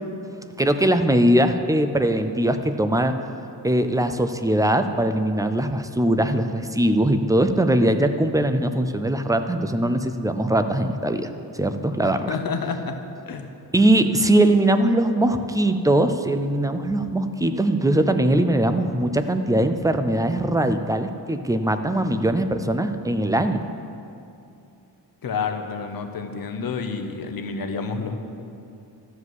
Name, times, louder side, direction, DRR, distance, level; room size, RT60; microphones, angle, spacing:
voice 1, 0.6-3.2 3.6-11.3 11.6-12.4 13.7-23.6, right 1 dB, 10° right, 8 dB, 0.3 m, -21 dB
voice 2, 12.3-13.0 13.3-13.5 25.2-28.2, left 5 dB, 60° left, 6 dB, 0.9 m, -29 dB
12.5 x 4.9 x 8.0 m, 2.6 s
wide cardioid pair, 160°, 40 cm